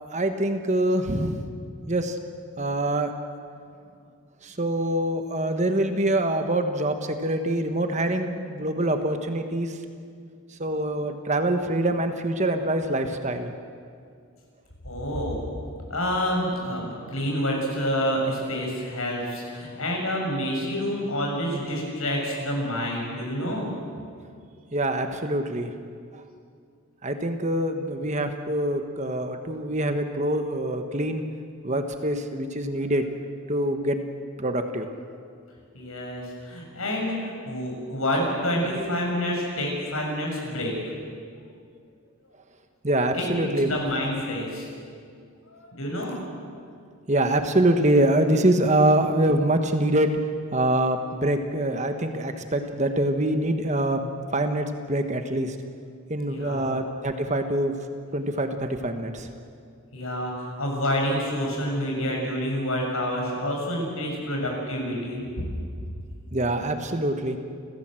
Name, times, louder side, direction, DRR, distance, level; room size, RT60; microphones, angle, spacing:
voice 1, 0.1-1.5 1.9-2.2 2.6-3.1 4.4-9.8 10.6-13.5 24.7-25.7 26.1-26.2 27.0-31.2 31.6-33.1 33.5-34.0 34.4-34.9 42.8-43.7 47.1-50.1 50.5-55.6 56.1-57.7 58.1-59.3 66.3-67.4, right 1 dB, 30° right, 6 dB, 1.3 m, -25 dB
voice 2, 14.8-15.4 15.9-23.7 35.7-40.7 43.1-44.7 45.5-46.2 56.3-56.7 59.9-65.2, equal, 70° left, 0 dB, 6.9 m, -28 dB
29.5 x 15.5 x 7.7 m, 2.3 s
head